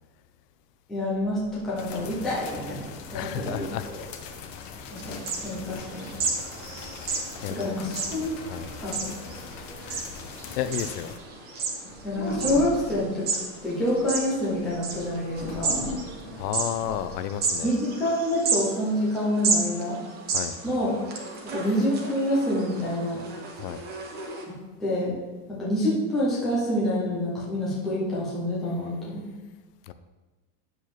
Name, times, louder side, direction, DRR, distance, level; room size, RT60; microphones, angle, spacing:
voice 1, 0.9-3.7 4.9-6.1 7.5-8.4 8.8-9.1 9.8-10.0 12.0-13.3 13.6-15.8 17.6-20.0 20.6-20.9 21.4-23.2 24.5-24.6 24.8-25.2 25.5-29.2, left 1 dB, ahead, -8 dB, 0.3 m, -27 dB
sound 1, 1.1-17.5, left 2 dB, 20° left, 1.4 m, -42 dB
sound 2, 1.8-11.2, left 5 dB, 50° left, 1.0 m, -42 dB
voice 2, 3.1-3.9 4.8-5.0 7.1-7.8 8.4-8.7 10.5-11.1 16.4-17.7 20.3-20.7 23.5-23.8 29.9-30.0, left 10 dB, 75° left, 11 dB, 0.7 m, -32 dB
sound 3, 4.9-24.5, right 4 dB, 20° right, 0.9 m, -33 dB
9.4 x 7.0 x 3.1 m, 1.2 s
supercardioid pair, 175°, 48 cm